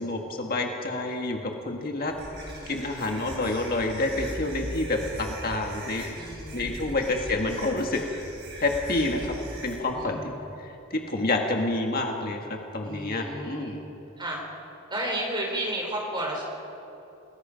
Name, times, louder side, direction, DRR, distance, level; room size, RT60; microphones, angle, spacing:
voice 1, 0.0-2.1 2.7-6.1 6.5-8.0 8.6-9.3 9.6-10.3 10.6-13.8, left 2 dB, 45° left, 2 dB, 1.7 m, -28 dB
sound 1, 2.1-9.7, right 1 dB, 50° right, 6.6 m, -39 dB
voice 2, 2.4-3.0 6.2-7.0 9.2-9.3 9.9-10.4 12.8-13.8 14.2-14.4 14.9-16.4, right 1 dB, 20° right, -1 dB, 4.5 m, -33 dB
29.0 x 20.0 x 5.2 m, 2.9 s
head